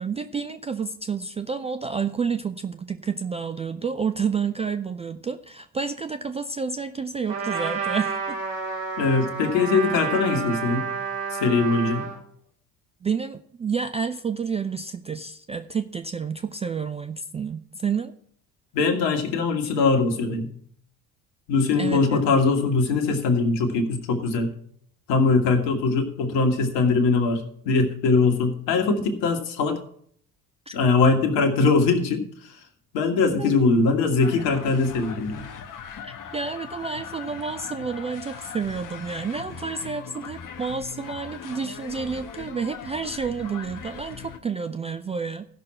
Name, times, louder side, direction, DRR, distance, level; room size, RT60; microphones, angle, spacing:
voice 1, 0.0-8.4 13.0-18.1 21.8-22.2 30.7-30.8 33.4-33.6 36.0-45.5, right 5 dB, 15° right, 9 dB, 0.3 m, -30 dB
Trumpet, 7.3-12.2, right 5 dB, 55° right, 5.2 m, -30 dB
voice 2, 9.0-10.8 11.3-12.0 18.7-20.5 21.5-24.5 25.1-29.8 30.7-32.5 32.9-35.5, left 4 dB, 65° left, 6 dB, 1.8 m, -21 dB
sound 1, 34.2-44.4, left 7 dB, 45° left, 1.2 m, -40 dB
15.5 x 6.1 x 4.3 m, 0.63 s
figure-of-eight pair, 55°, 47 cm